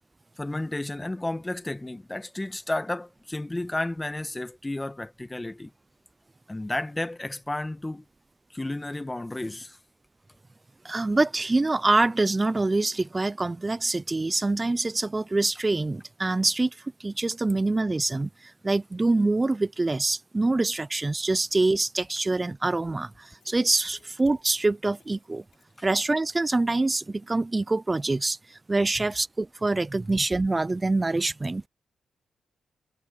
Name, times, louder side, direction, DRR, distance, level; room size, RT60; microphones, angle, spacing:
voice 1, 0.4-5.7 6.5-8.0 8.5-9.8 25.8-25.9, left 2 dB, 15° left, 1.4 m, -32 dB
voice 2, 10.8-16.7 17.0-18.3 18.6-25.4 25.8-28.4 28.7-31.7, right 2 dB, 25° right, 0.5 m, -25 dB
sound 1, 23.3-26.5 26.8-26.9 27.2-27.3, left 8 dB, 75° left, 5.0 m, -60 dB
cardioid pair, 75°, 0 cm